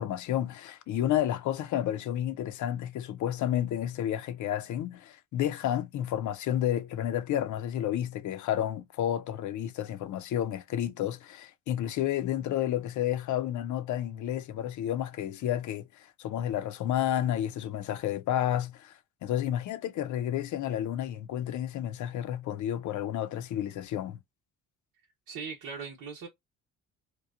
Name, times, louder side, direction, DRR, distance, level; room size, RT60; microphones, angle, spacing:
voice 1, 0.0-24.2, left 11 dB, 60° left, 0.6 m, -31 dB
voice 2, 25.3-26.3, right 5 dB, 75° right, 0.9 m, -39 dB
2.9 x 2.2 x 2.3 m
supercardioid pair, 70°, 34 cm